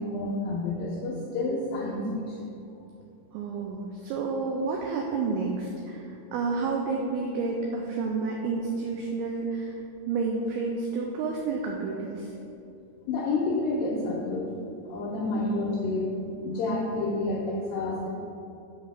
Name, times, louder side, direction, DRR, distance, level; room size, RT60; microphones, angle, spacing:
voice 1, 0.0-2.5 13.1-14.5 14.9-18.1, left 2 dB, 80° left, -4 dB, 2.1 m, -29 dB
voice 2, 3.3-12.4 15.3-15.4, right 4 dB, 85° right, 0 dB, 2.2 m, -30 dB
7.9 x 4.1 x 6.5 m, 2.7 s
omnidirectional pair, 5.2 m